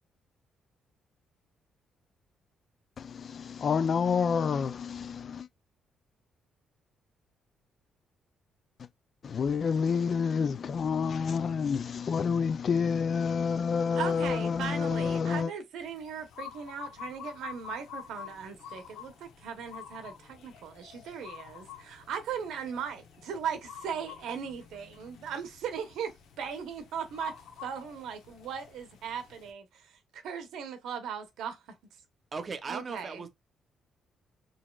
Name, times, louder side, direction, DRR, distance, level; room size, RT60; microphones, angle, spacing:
voice 1, 3.0-5.5 9.2-15.5, left 6 dB, 50° left, 0.3 m, -28 dB
voice 2, 13.9-31.8 32.7-33.2, right 7 dB, 85° right, 0.9 m, -38 dB
sound 1, 15.8-29.5, left 8 dB, 90° left, 0.9 m, -48 dB
voice 3, 32.3-33.3, right 4 dB, 40° right, 0.8 m, -37 dB
4.1 x 3.1 x 2.3 m
cardioid pair, 90°, 0 cm